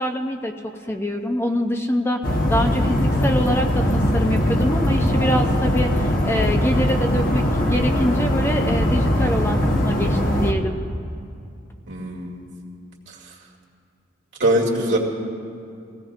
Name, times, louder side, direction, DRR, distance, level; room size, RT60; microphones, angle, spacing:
voice 1, 0.0-2.2 2.5-10.8, equal, 10° left, 3 dB, 0.6 m, -25 dB
sound 1, 2.2-10.5, left 1 dB, 45° left, 1.2 m, -20 dB
voice 2, 11.9-12.4 14.4-15.0, right 1 dB, 70° right, -4 dB, 2.3 m, -21 dB
23.0 x 17.0 x 2.5 m, 2.5 s
head